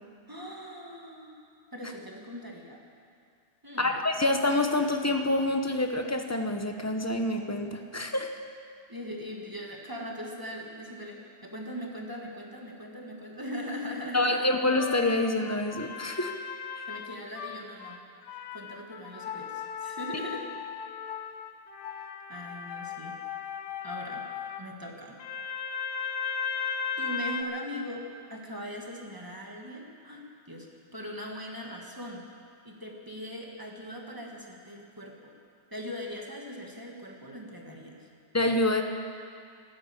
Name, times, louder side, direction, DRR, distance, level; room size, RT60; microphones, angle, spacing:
voice 1, 0.3-1.5 1.7-2.8 3.6-4.0 8.9-14.4 16.9-18.0 18.5-20.5 21.9-23.1 23.8-24.3 24.6-25.2 27.0-30.7 30.9-32.3 32.6-35.3 35.7-38.1, equal, 10° right, 0 dB, 1.7 m, -40 dB
voice 2, 3.8-8.3 14.1-16.3 16.8-16.9 38.3-38.8, left 2 dB, 25° left, 4 dB, 0.3 m, -27 dB
sound 1, 14.7-18.0 18.3-24.6 25.2-27.4, left 6 dB, 75° left, 1.3 m, -36 dB
13.0 x 12.0 x 8.9 m, 2.3 s
omnidirectional pair, 1.8 m